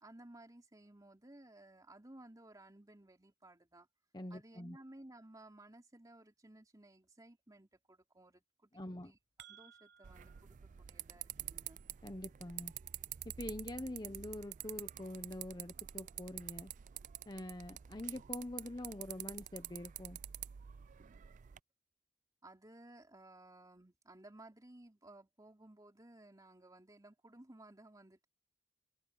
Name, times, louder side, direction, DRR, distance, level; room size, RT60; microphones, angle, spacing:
voice 1, 0.0-3.9 4.3-8.7 9.0-9.2 9.5-11.8 22.4-28.3, right 1 dB, 20° right, 3.0 m, -58 dB
voice 2, 4.1-4.8 8.7-9.1 12.0-12.7 13.2-16.7 17.3-20.2, left 1 dB, 20° left, 1.0 m, -45 dB
sound 1, 8.9-10.4, right 10 dB, 65° right, 7.6 m, -59 dB
sound 2, 10.0-21.6, right 12 dB, 45° right, 0.3 m, -48 dB
open air
head